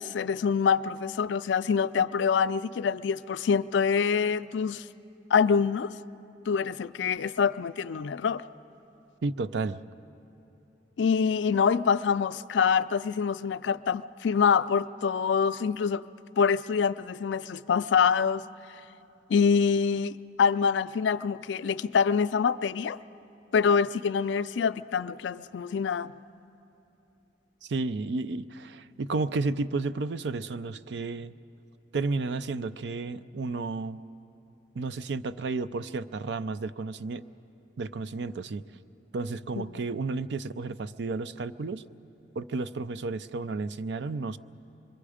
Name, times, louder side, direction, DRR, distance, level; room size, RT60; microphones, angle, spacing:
voice 1, 0.0-4.8 5.3-5.9 6.5-8.4 11.0-16.0 16.4-18.4 19.3-23.0 23.5-26.1 39.6-39.7, left 6 dB, 85° left, 0.4 m, -25 dB
voice 2, 9.2-9.8 27.6-31.3 31.9-34.0 34.7-37.2 37.8-38.6 39.1-41.8 42.4-44.4, right 3 dB, 70° right, 0.5 m, -32 dB
25.5 x 22.0 x 5.0 m
head